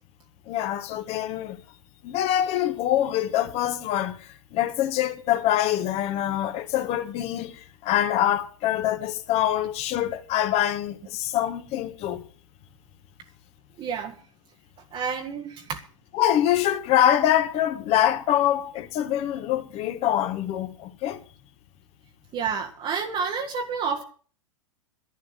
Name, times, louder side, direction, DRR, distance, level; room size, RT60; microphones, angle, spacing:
voice 1, 0.5-1.6 2.0-12.2 16.1-21.2, left 11 dB, 40° left, 1.8 m, -25 dB
voice 2, 13.8-14.1 14.9-15.8 22.3-24.0, right 6 dB, 30° right, 1.5 m, -29 dB
11.0 x 11.0 x 7.7 m
hypercardioid pair, 110°, 16 cm